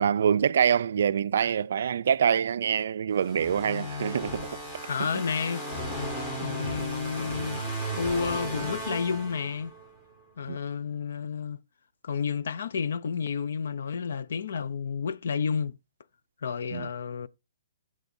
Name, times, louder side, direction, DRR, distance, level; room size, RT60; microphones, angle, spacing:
voice 1, 0.0-4.5 5.0-5.1 10.5-10.6 16.7-16.9, right 8 dB, 55° right, 0.3 m, -25 dB
sound 1, 3.2-9.9, right 1 dB, 15° left, 1.7 m, -35 dB
voice 2, 4.9-5.6 6.4-7.6 7.9-9.7 10.4-11.6 12.0-15.8 16.4-17.3, left 6 dB, 60° left, 0.4 m, -31 dB
15.0 x 6.1 x 2.6 m
hypercardioid pair, 175°, 0 cm